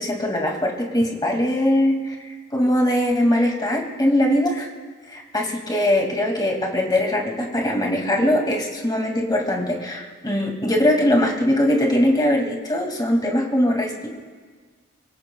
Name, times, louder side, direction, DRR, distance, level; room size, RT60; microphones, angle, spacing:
voice 1, 0.0-4.7 5.1-14.1, left 1 dB, 20° left, 0 dB, 2.3 m, -21 dB
24.5 x 24.0 x 2.3 m, 1.5 s
head